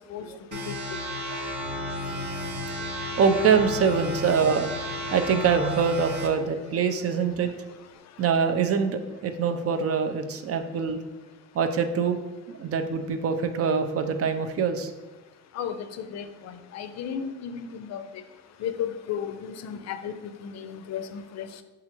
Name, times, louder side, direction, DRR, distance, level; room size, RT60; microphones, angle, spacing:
sound 1, 0.5-6.3, left 1 dB, 75° right, 1.0 m, -33 dB
Bowed string instrument, 1.5-6.5, right 1 dB, 20° right, 0.8 m, -44 dB
voice 1, 3.2-4.7 5.1-7.5 8.2-11.0 11.5-12.2 12.5-14.9, right 6 dB, 50° right, 8 dB, 0.5 m, -24 dB
voice 2, 15.5-18.0 18.6-21.6, left 8 dB, 60° left, 9 dB, 0.5 m, -34 dB
6.7 x 2.4 x 2.9 m, 1.1 s
cardioid pair, 90°, 30 cm